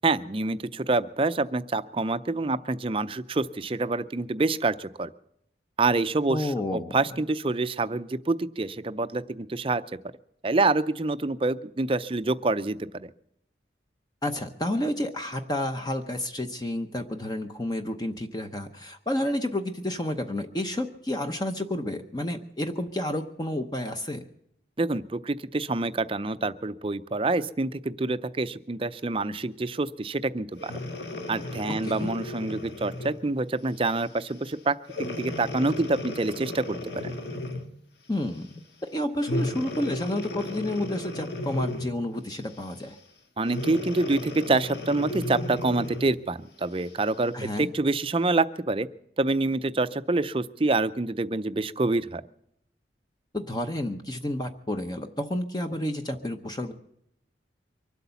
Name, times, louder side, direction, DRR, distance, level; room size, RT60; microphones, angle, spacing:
voice 1, 0.0-5.1 5.8-9.8 10.4-13.1 24.8-30.7 31.3-37.1 43.4-48.9 49.2-52.2, right 3 dB, 30° right, 13 dB, 0.5 m, -27 dB
voice 2, 6.3-7.0 14.2-24.2 31.8-32.1 38.1-38.6 38.9-43.0 47.3-47.7 53.3-56.7, left 1 dB, 20° left, 6 dB, 0.8 m, -30 dB
Breathing, 30.6-33.2 33.8-34.1 34.9-37.8 39.2-42.1 43.4-46.2 46.8-46.9, left 2 dB, 65° left, 1.7 m, -34 dB
24.0 x 8.2 x 7.0 m, 0.76 s
head